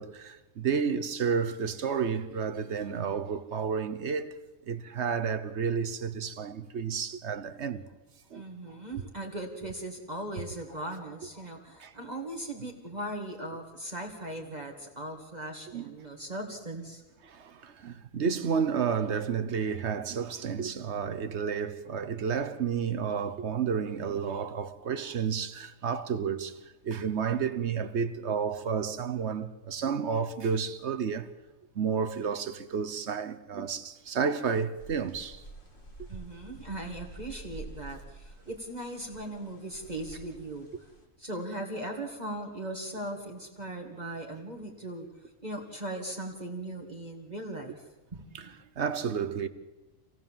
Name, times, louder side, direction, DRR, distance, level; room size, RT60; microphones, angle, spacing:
voice 1, 0.0-4.4 4.6-7.8 8.3-8.4 11.8-11.9 15.7-15.8 17.2-26.6 26.8-31.3 31.7-35.4 36.0-36.1 48.3-49.5, right 6 dB, 60° right, 1.2 m, -31 dB
voice 2, 8.3-17.0 36.1-40.7 41.2-45.1 45.4-48.5, right 1 dB, 30° right, 1.9 m, -39 dB
sound 1, 34.8-41.1, right 1 dB, 40° left, 2.9 m, -48 dB
26.5 x 17.0 x 7.3 m
omnidirectional pair, 1.4 m